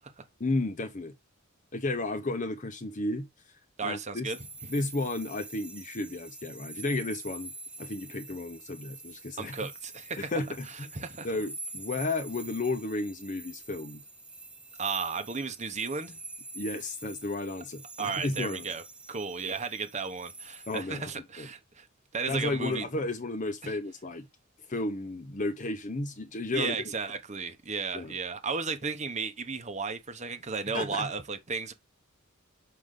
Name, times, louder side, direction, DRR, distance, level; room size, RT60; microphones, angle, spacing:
voice 1, 0.4-1.1 1.7-3.3 3.8-4.3 4.7-7.5 7.8-9.7 10.2-10.9 11.2-14.0 16.5-18.7 20.7-21.1 21.4-21.5 22.3-24.3 24.7-26.9 27.9-28.1 30.7-31.1, left 2 dB, 35° left, 0.8 m, -33 dB
voice 2, 3.8-4.4 9.4-10.3 10.9-11.3 14.8-16.2 18.0-18.8 19.1-21.9 22.1-22.9 23.6-23.8 26.5-31.7, right 4 dB, 35° right, 1.0 m, -34 dB
sound 1, 4.2-20.8, right 3 dB, 5° right, 0.6 m, -46 dB
6.6 x 5.2 x 3.7 m
head